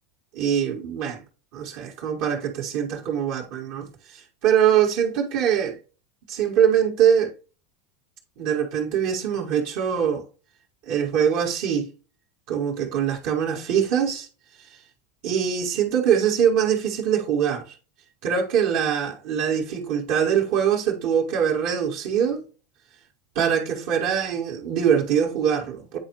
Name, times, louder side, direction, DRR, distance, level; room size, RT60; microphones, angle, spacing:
voice 1, 0.3-1.2 1.5-5.8 6.3-7.3 8.4-10.2 10.9-11.9 12.5-14.3 15.2-17.7 18.2-22.4 23.3-26.0, right 8 dB, 60° right, 1.2 m, -23 dB
8.7 x 4.2 x 2.9 m
hypercardioid pair, 90°, 0 cm